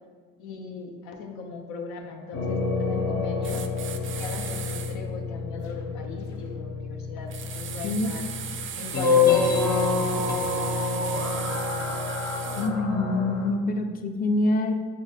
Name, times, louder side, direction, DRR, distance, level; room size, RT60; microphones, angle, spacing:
voice 1, 0.4-3.6 4.0-8.3 8.7-12.0, left 4 dB, 90° left, 3 dB, 0.5 m, -39 dB
sound 1, 2.3-13.5, left 4 dB, 70° left, 0.8 m, -27 dB
sound 2, 3.4-5.0 7.3-12.7, right 8 dB, 45° right, 0.4 m, -37 dB
voice 2, 12.6-14.7, left 2 dB, 30° left, 6 dB, 0.4 m, -25 dB
5.1 x 3.3 x 2.7 m, 1.6 s
supercardioid pair, 60°, 30 cm